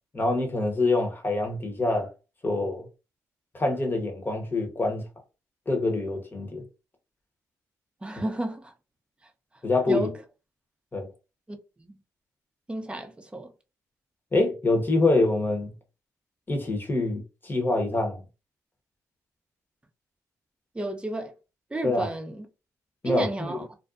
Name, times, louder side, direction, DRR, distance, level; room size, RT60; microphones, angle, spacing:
voice 1, 0.1-2.1 2.4-2.8 3.5-5.1 5.7-6.6 9.6-10.1 10.9-11.1 14.3-15.7 16.5-18.2 21.8-22.1 23.0-23.6, left 2 dB, 30° left, 1.0 m, -25 dB
voice 2, 8.0-8.7 9.9-10.2 11.5-12.0 12.7-13.5 20.7-21.3 21.7-22.5 23.0-23.7, right 2 dB, 15° right, 0.6 m, -32 dB
2.6 x 2.2 x 2.4 m
supercardioid pair, 50°, 7 cm